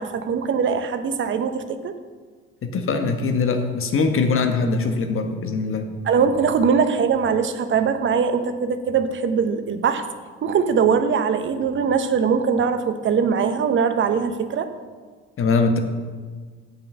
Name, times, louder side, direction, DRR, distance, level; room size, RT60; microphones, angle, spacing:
voice 1, 0.0-2.0 6.0-10.0 10.4-14.7, right 6 dB, 35° right, 9 dB, 1.0 m, -21 dB
voice 2, 2.6-5.9 15.4-15.8, left 4 dB, 40° left, 6 dB, 1.4 m, -22 dB
8.9 x 7.4 x 5.6 m, 1.5 s
figure-of-eight pair, 55°, 34 cm